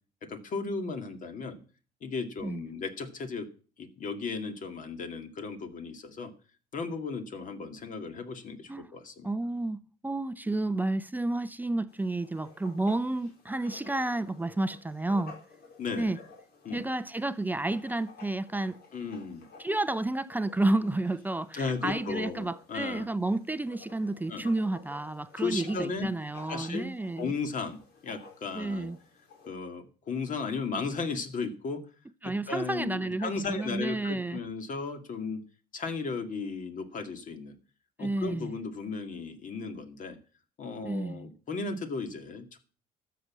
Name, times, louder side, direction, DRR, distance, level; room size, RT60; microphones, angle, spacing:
voice 1, 0.3-1.6 2.0-3.5 3.8-6.3 6.7-9.3 15.8-16.2 16.6-16.8 18.9-19.5 21.5-23.1 24.3-24.4 25.4-26.1 26.5-26.9 27.2-28.9 29.5-31.8 32.2-35.4 35.7-37.6 38.0-40.2 40.6-42.6, left 4 dB, 50° left, 2.2 m, -35 dB
voice 2, 9.2-15.4 16.0-16.2 16.7-18.8 19.6-27.3 28.5-29.0 32.2-34.4 38.0-38.5 40.8-41.3, right 2 dB, 10° right, 0.5 m, -31 dB
Writing, 11.9-29.5, left 4 dB, 70° left, 4.3 m, -53 dB
13.0 x 6.8 x 7.4 m
cardioid pair, 110°, 17 cm